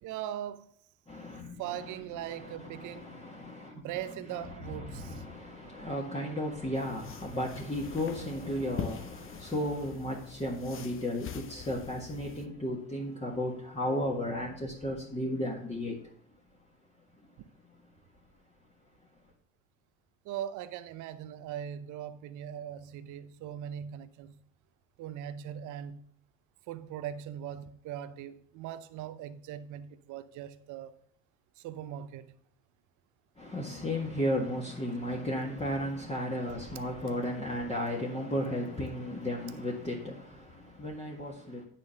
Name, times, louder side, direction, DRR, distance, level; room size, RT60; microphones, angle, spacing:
voice 1, 0.0-0.7 1.6-3.1 3.7-5.2 20.2-24.4 25.0-26.0 26.7-30.9 31.6-32.3, right 10 dB, 50° right, 0.7 m, -40 dB
voice 2, 1.1-16.0 17.7-17.8 33.4-41.6, left 1 dB, 15° left, 1.7 m, -34 dB
sound 1, 6.7-12.5, left 8 dB, 30° left, 0.9 m, -44 dB
10.0 x 4.2 x 6.5 m
hypercardioid pair, 75°, 40 cm